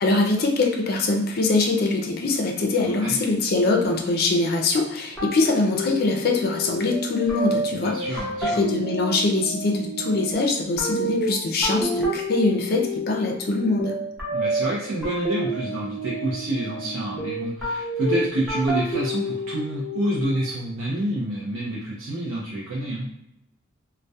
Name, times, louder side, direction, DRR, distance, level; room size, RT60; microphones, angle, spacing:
voice 1, 0.0-14.0, left 3 dB, 50° left, 2 dB, 0.4 m, -23 dB
voice 2, 2.8-3.2 7.8-8.6 14.3-23.1, right 1 dB, 85° right, -5 dB, 0.5 m, -28 dB
sound 1, 5.2-20.5, right 1 dB, ahead, 0.7 m, -29 dB
2.2 x 2.1 x 2.6 m, 0.83 s
head